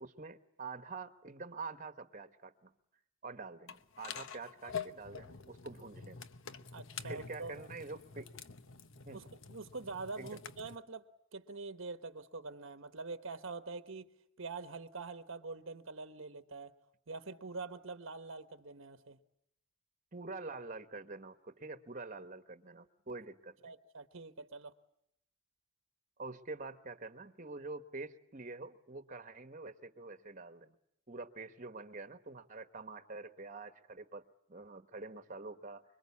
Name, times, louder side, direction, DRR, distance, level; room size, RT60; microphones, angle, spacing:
voice 1, 0.0-2.7 3.2-6.2 7.0-8.3 9.0-9.3 10.2-10.4 20.1-23.7 26.2-30.7 31.1-35.8, right 3 dB, 35° right, 1.3 m, -46 dB
sound 1, 3.7-10.8, left 6 dB, 60° left, 1.0 m, -47 dB
voice 2, 6.7-7.5 9.1-14.1 14.4-16.7 17.1-19.2 23.6-24.7, right 3 dB, 60° right, 1.1 m, -45 dB
25.5 x 23.0 x 8.4 m
head